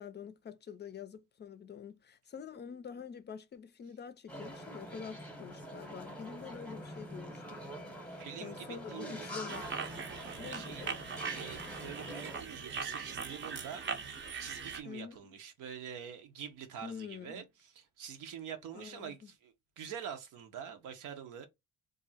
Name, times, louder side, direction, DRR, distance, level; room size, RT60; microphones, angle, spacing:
voice 1, 0.0-7.6 8.4-9.7 10.4-11.0 14.8-15.3 16.8-17.4 18.7-19.3, left 7 dB, 35° left, 0.4 m, -46 dB
sound 1, 4.3-12.4, equal, 5° left, 0.8 m, -45 dB
voice 2, 8.1-9.3 10.3-10.9 11.3-13.8 14.4-21.5, right 8 dB, 85° right, 0.8 m, -46 dB
sound 2, 9.5-14.8, right 5 dB, 40° right, 0.6 m, -40 dB
2.5 x 2.0 x 3.9 m
cardioid pair, 90°, 30 cm